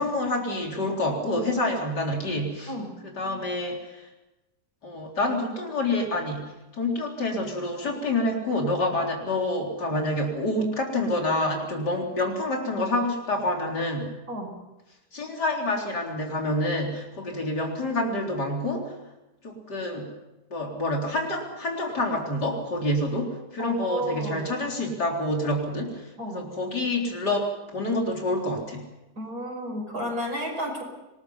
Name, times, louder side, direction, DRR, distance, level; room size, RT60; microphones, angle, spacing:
voice 1, 0.0-2.7 3.0-4.1 4.8-14.2 15.1-18.9 19.4-20.1 20.5-28.8, left 1 dB, 90° left, 0 dB, 4.5 m, -27 dB
voice 2, 23.6-24.4 26.2-26.5 29.2-30.8, equal, 65° right, 2 dB, 6.2 m, -32 dB
26.0 x 20.0 x 5.8 m, 0.99 s
omnidirectional pair, 1.7 m